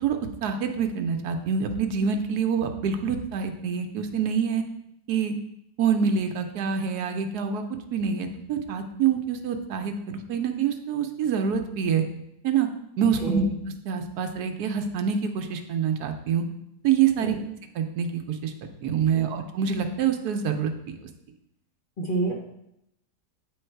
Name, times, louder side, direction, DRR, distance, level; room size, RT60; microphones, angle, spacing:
voice 1, 0.0-4.6 5.1-5.3 5.8-7.6 7.9-12.0 12.4-12.7 13.0-13.5 13.8-16.4 16.8-17.4 17.7-21.0, right 7 dB, 75° right, 6 dB, 1.2 m, -26 dB
voice 2, 22.0-22.3, right 2 dB, 40° left, -1 dB, 0.9 m, -28 dB
8.6 x 3.8 x 4.5 m, 0.79 s
omnidirectional pair, 1.7 m